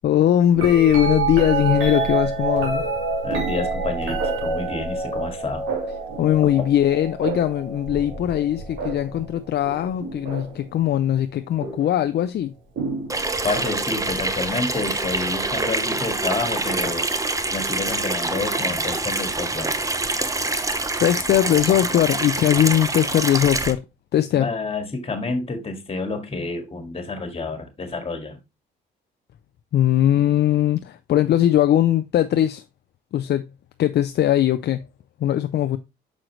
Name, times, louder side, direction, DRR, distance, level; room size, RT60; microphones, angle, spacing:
voice 1, 0.0-2.9 6.2-12.5 21.0-23.8 24.1-24.5 29.7-32.6 33.1-33.5 33.8-34.9 35.2-35.8, left 11 dB, 55° left, 0.5 m, -20 dB
sound 1, 0.5-10.7 11.6-12.0 12.8-13.7 15.5-15.6, right 3 dB, 75° right, 2.9 m, -28 dB
voice 2, 3.2-5.7 6.4-6.6 13.4-17.1 17.5-19.7 24.3-28.4, left 3 dB, 30° left, 1.9 m, -29 dB
Water tap faucet / Sink (filling or washing), 13.1-23.7, right 2 dB, 15° right, 0.7 m, -25 dB
6.3 x 4.9 x 3.1 m
cardioid pair, 90°, 20 cm